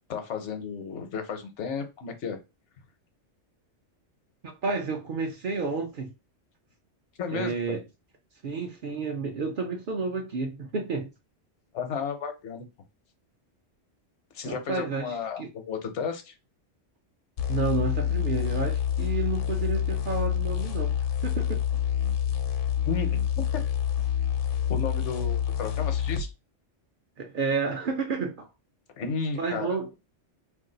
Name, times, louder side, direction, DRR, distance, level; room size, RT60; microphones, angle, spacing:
voice 1, 0.1-2.4 7.2-7.8 11.7-12.7 14.3-16.3 22.9-23.6 24.7-26.3 29.0-29.7, left 5 dB, 75° left, 1.0 m, -33 dB
voice 2, 4.4-6.1 7.3-7.8 8.4-11.1 14.5-15.5 17.5-21.0 21.2-21.6 27.2-28.5 29.4-29.9, right 4 dB, 60° right, 0.6 m, -30 dB
sound 1, 17.4-26.3, left 9 dB, 60° left, 0.6 m, -27 dB
2.5 x 2.3 x 3.8 m
omnidirectional pair, 1.2 m